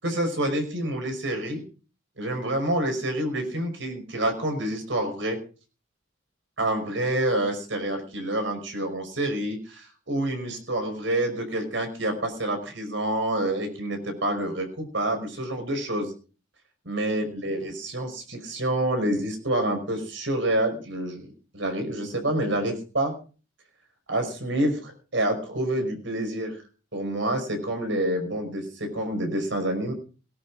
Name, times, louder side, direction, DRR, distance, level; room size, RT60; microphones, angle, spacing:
voice 1, 0.0-1.6 2.2-5.4 6.6-16.1 16.9-21.3 21.5-23.1 24.1-26.6 26.9-29.9, right 1 dB, 65° right, 5 dB, 5.4 m, -27 dB
19.0 x 10.5 x 4.9 m, 0.36 s
head